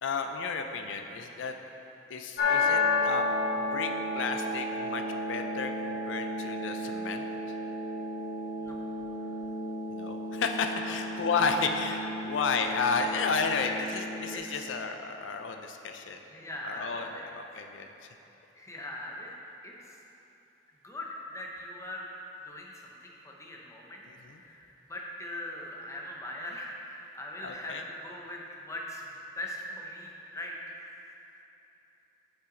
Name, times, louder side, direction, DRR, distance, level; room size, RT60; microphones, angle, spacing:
voice 1, 0.0-1.5 2.1-3.2 3.6-7.6 9.9-16.2 16.6-18.1 24.1-24.4 27.4-27.8, left 4 dB, 85° left, 5 dB, 0.4 m, -32 dB
sound 1, 2.4-14.4, left 2 dB, 50° left, 0.9 m, -32 dB
voice 2, 13.3-13.8 14.3-14.6 16.1-17.7 18.6-19.3 19.6-20.0 20.8-21.1 21.3-22.1 22.4-29.0 29.4-30.8, left 1 dB, 15° left, -2 dB, 0.7 m, -41 dB
7.8 x 5.7 x 3.8 m, 3.0 s
head